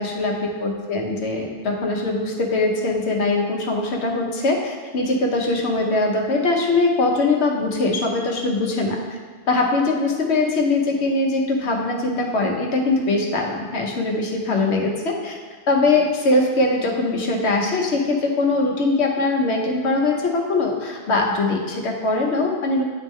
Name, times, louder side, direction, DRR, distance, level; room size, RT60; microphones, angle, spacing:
voice 1, 0.0-9.0 9.5-15.4 15.7-22.8, left 2 dB, 85° left, 0 dB, 1.2 m, -21 dB
9.6 x 3.6 x 3.1 m, 1.5 s
omnidirectional pair, 1.1 m